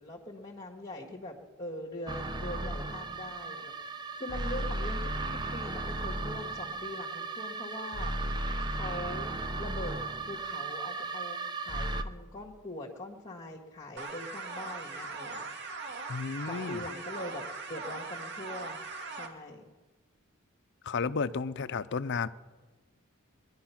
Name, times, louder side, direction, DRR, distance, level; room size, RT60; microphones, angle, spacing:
voice 1, 0.0-3.7 4.2-5.1 5.5-9.3 9.6-10.0 10.3-11.4 11.6-15.4 16.4-17.4 17.7-18.8 19.1-19.7, left 1 dB, 25° left, 1.7 m, -42 dB
sound 1, 2.1-12.0, right 2 dB, 20° right, 0.7 m, -35 dB
sound 2, 14.0-19.3, right 3 dB, 55° right, 1.9 m, -40 dB
voice 2, 16.1-16.8 20.8-22.3, left 5 dB, 55° left, 0.5 m, -32 dB
22.0 x 11.0 x 5.8 m
head